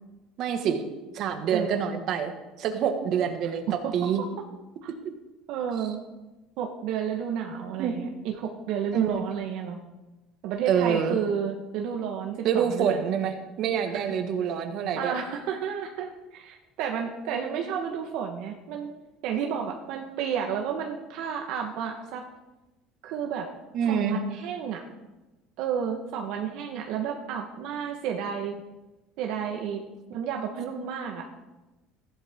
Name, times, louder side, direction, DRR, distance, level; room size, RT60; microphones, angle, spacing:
voice 1, 0.4-0.8 1.1-2.3 2.6-3.6 3.9-4.2 7.8-8.0 8.9-9.1 10.7-11.2 12.4-15.1 23.7-24.2, right 8 dB, 55° right, 5 dB, 1.6 m, -26 dB
voice 2, 1.5-1.8 3.7-4.3 4.8-4.9 5.5-6.0 6.6-9.8 10.4-13.1 13.9-14.0 14.9-18.9 19.2-22.2 23.0-23.5 23.8-24.8 25.6-28.6 29.2-29.8 30.1-31.3, right 8 dB, 70° right, 2 dB, 1.3 m, -31 dB
14.5 x 11.5 x 3.6 m, 1.1 s
cardioid pair, 130°, 0 cm